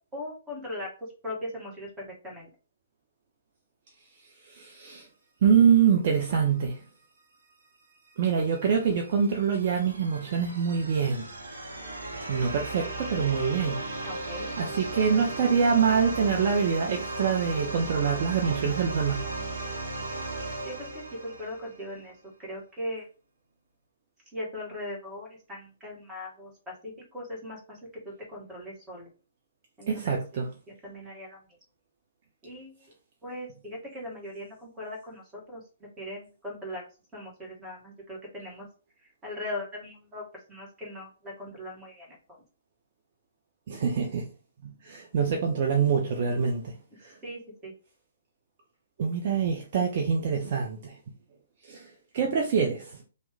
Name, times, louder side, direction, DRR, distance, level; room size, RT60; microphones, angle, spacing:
voice 1, 0.1-0.9 1.2-2.5 14.0-14.5 20.6-22.1 22.4-23.1 24.3-27.8 28.0-29.1 29.8-31.4 32.4-32.9 33.2-35.2 35.5-36.8 37.1-38.7 39.2-40.2 40.5-42.2 47.2-47.7, left 1 dB, 15° right, 1.3 m, -39 dB
voice 2, 4.5-5.1 5.4-6.8 8.2-11.3 12.3-13.8 14.6-19.2 29.9-30.5 43.7-44.2 44.6-46.7 47.0-47.2 49.0-51.0 51.6-53.0, right 6 dB, 40° right, 0.5 m, -25 dB
sound 1, 8.1-21.9, right 2 dB, 65° right, 0.8 m, -36 dB
3.0 x 2.1 x 3.4 m
figure-of-eight pair, 125°, 0 cm